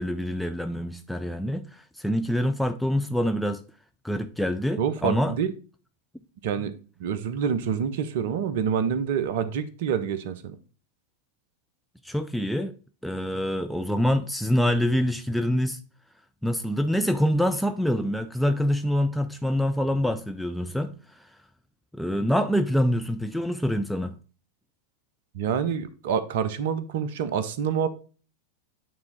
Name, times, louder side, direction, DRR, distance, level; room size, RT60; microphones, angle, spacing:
voice 1, 0.0-3.6 4.0-5.4 12.0-12.8 13.0-15.8 16.4-21.3 21.9-24.2, equal, ahead, 0.4 m, -26 dB
voice 2, 4.8-5.5 6.4-6.7 7.0-10.6 25.3-27.9, right 7 dB, 55° right, 0.7 m, -27 dB
8.9 x 3.5 x 3.9 m
figure-of-eight pair, 90°, 0 cm